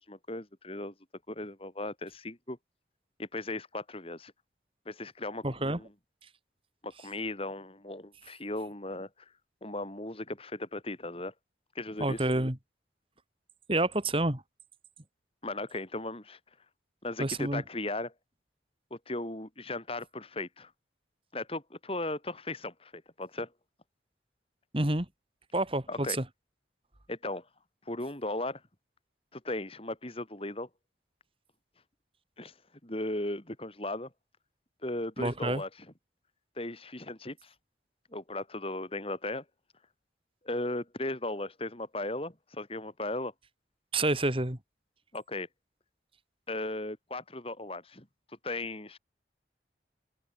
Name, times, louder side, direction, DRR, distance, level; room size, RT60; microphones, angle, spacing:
voice 1, 0.1-0.9 1.3-2.6 3.2-4.3 4.9-5.9 6.8-9.1 9.6-11.3 11.8-12.2 15.4-16.4 17.0-18.1 18.9-20.7 21.3-23.5 25.9-26.2 27.1-27.4 27.9-28.6 29.3-30.7 32.4-32.5 32.8-34.1 34.8-35.7 36.6-37.5 38.1-39.4 40.4-43.3 45.1-45.5 46.5-48.1 48.4-49.0, left 2 dB, 30° left, 4.0 m, -37 dB
voice 2, 5.4-5.8 12.0-12.6 13.7-14.4 17.2-17.6 24.7-25.1 25.5-26.2 35.2-35.6 43.9-44.6, right 2 dB, 30° right, 2.7 m, -28 dB
open air
head